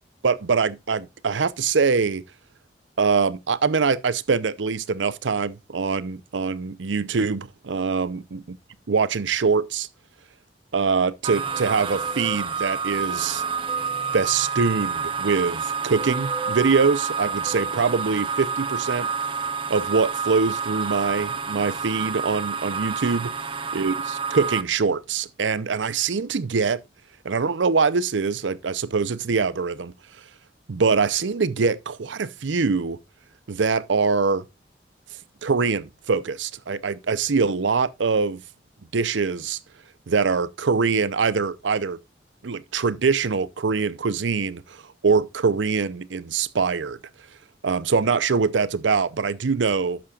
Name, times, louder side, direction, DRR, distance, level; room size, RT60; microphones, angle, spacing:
voice 1, 0.2-2.2 3.0-8.2 8.9-9.9 10.7-13.4 14.1-19.1 19.7-23.3 23.7-23.9 24.3-26.8 27.2-29.9 30.7-33.0 33.5-34.5 35.4-38.4 38.9-39.6 40.1-42.0 42.4-47.0 47.6-50.0, right 5 dB, 80° right, 0.6 m, -23 dB
sound 1, 11.2-24.6, right 5 dB, 25° right, 0.7 m, -29 dB
sound 2, 11.5-12.4 13.7-14.3 15.9-16.6 17.4-18.1, right 1 dB, 5° left, 2.3 m, -39 dB
11.5 x 8.5 x 2.4 m
head